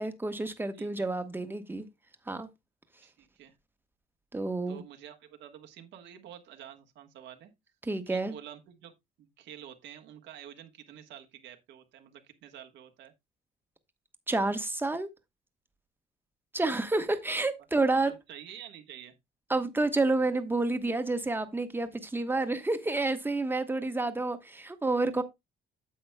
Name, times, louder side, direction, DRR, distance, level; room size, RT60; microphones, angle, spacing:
voice 1, 0.0-1.8 2.3-2.5 4.3-4.8 7.8-8.3 14.3-15.1 16.5-18.1 19.5-25.2, right 2 dB, 10° right, 1.1 m, -29 dB
voice 2, 0.7-1.1 3.0-3.5 4.7-7.5 8.1-8.9 9.2-13.1 18.0-19.1, right 10 dB, 85° right, 1.5 m, -49 dB
9.9 x 7.7 x 2.2 m
cardioid pair, 110°, 18 cm